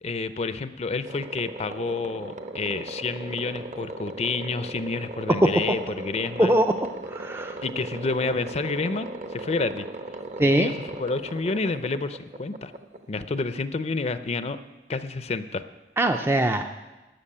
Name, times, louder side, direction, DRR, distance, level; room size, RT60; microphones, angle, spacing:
voice 1, 0.0-6.6 7.6-9.9 10.4-10.7 11.0-12.7 13.1-14.6 14.9-15.6, left 3 dB, 35° left, 12 dB, 0.5 m, -29 dB
sound 1, 1.1-13.7, right 2 dB, 45° right, 0.9 m, -38 dB
voice 2, 5.4-5.7 6.4-6.7 7.1-7.6 10.4-10.7 16.0-16.6, right 1 dB, 15° right, 6 dB, 0.4 m, -21 dB
13.0 x 7.0 x 9.9 m, 1.1 s
head